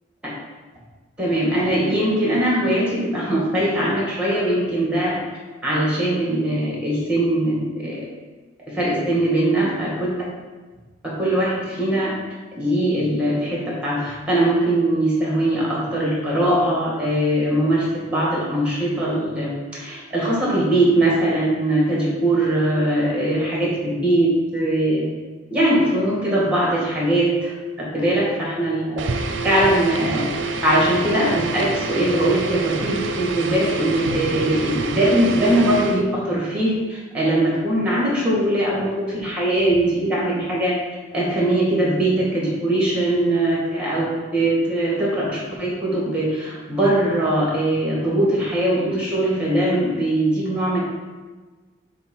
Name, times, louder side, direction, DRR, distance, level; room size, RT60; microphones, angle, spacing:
voice 1, 1.2-5.2 5.6-8.0 8.7-10.1 11.0-12.2 12.6-25.1 25.5-27.5 27.8-29.0 29.4-40.8 41.1-50.8, right 1 dB, 5° right, -5 dB, 2.1 m, -21 dB
sound 1, 29.0-36.1, right 4 dB, 70° right, 0.5 m, -27 dB
7.8 x 2.7 x 5.6 m, 1.3 s
head